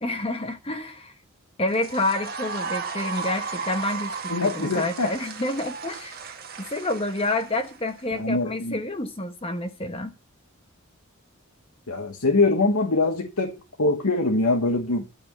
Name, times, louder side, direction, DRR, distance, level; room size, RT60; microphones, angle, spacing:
voice 1, 0.0-1.1 1.6-6.2 6.7-10.1, left 2 dB, 25° left, 1.2 m, -28 dB
sound 1, 1.7-8.0, right 5 dB, 45° right, 1.6 m, -35 dB
voice 2, 4.3-5.1 8.1-8.8 11.9-15.1, left 3 dB, 75° left, 1.4 m, -23 dB
12.5 x 6.3 x 6.9 m
head